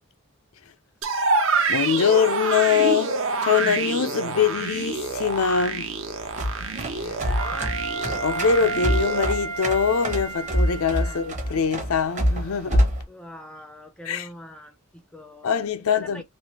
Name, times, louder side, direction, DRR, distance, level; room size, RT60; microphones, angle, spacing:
sound 1, 1.0-9.3, right 4 dB, 65° right, 0.7 m, -27 dB
voice 1, 1.7-3.2 3.4-5.9 7.0-7.1 8.2-12.9 14.0-14.3 15.4-16.2, left 6 dB, 90° left, 0.5 m, -23 dB
sound 2, 6.2-13.0, equal, 35° right, 0.9 m, -26 dB
voice 2, 7.0-7.8 11.0-11.2 13.1-15.5 16.0-16.2, left 1 dB, 5° left, 0.4 m, -43 dB
Wind instrument woodwind instrument, 7.3-11.6, right 3 dB, 85° right, 1.2 m, -32 dB
3.2 x 2.4 x 2.8 m
head